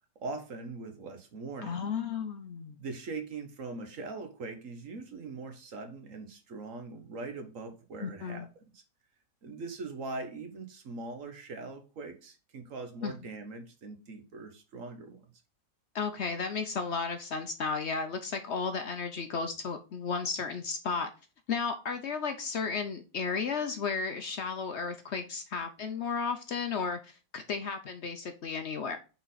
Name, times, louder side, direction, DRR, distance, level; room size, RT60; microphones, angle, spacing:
voice 1, 0.1-1.8 2.8-8.8 9.4-15.3, right 3 dB, 60° right, 1.4 m, -41 dB
voice 2, 1.6-2.8 8.0-8.5 13.0-13.1 15.9-21.1 21.5-29.0, left 5 dB, 60° left, 0.8 m, -34 dB
5.7 x 4.3 x 3.9 m
omnidirectional pair, 1.6 m